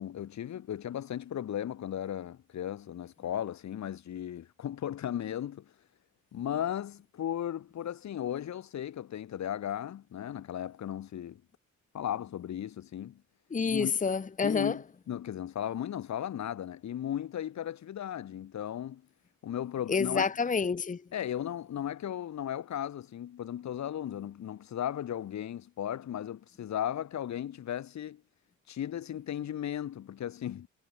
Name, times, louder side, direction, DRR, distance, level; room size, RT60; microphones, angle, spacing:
voice 1, 0.0-5.7 6.3-11.4 11.9-13.2 13.6-13.9 14.4-19.0 19.4-20.3 21.1-28.2 28.7-30.7, left 10 dB, 65° left, 3.8 m, -36 dB
voice 2, 13.5-14.8 19.9-21.0, left 5 dB, 25° left, 1.1 m, -28 dB
cardioid pair, 90°, 30 cm